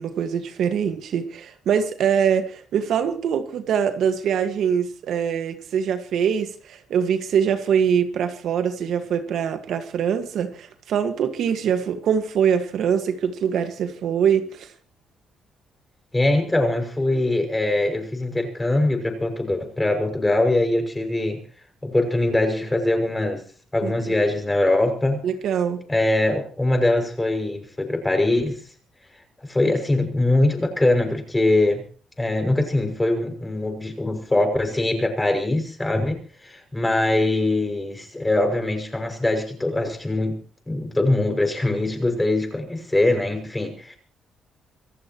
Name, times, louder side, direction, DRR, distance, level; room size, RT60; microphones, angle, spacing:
voice 1, 0.0-14.7 23.8-24.1 25.2-25.8, right 7 dB, 75° right, 1.7 m, -23 dB
voice 2, 16.1-21.4 21.8-23.4 23.7-25.2 25.9-28.6 29.4-31.8 32.2-40.4 40.7-44.0, left 2 dB, 15° left, 6.3 m, -22 dB
26.5 x 15.5 x 3.1 m
cardioid pair, 90°, 0 cm